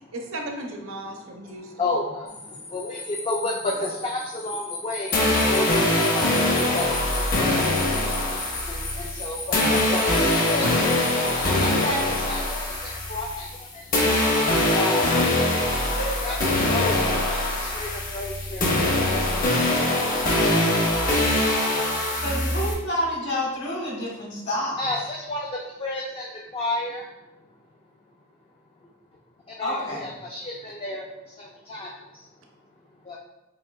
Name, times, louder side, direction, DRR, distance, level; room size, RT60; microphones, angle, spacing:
voice 1, 0.1-1.7 3.6-3.8 22.2-22.4, right 1 dB, 70° right, 2 dB, 0.6 m, -36 dB
voice 2, 1.4-5.2 5.5-14.0 14.4-15.6 16.2-22.1 24.8-27.1 28.8-28.9 29.5-32.3 33.0-33.2, left 2 dB, 25° left, -1 dB, 0.3 m, -33 dB
sound 1, 2.3-12.6, left 3 dB, 85° left, 1.0 m, -37 dB
sound 2, 5.1-13.6 13.9-22.7, left 1 dB, 40° left, 0.8 m, -23 dB
voice 3, 16.0-16.7 22.2-24.8 29.6-30.0, equal, 55° left, -3 dB, 1.2 m, -29 dB
5.8 x 2.6 x 2.3 m, 0.97 s
head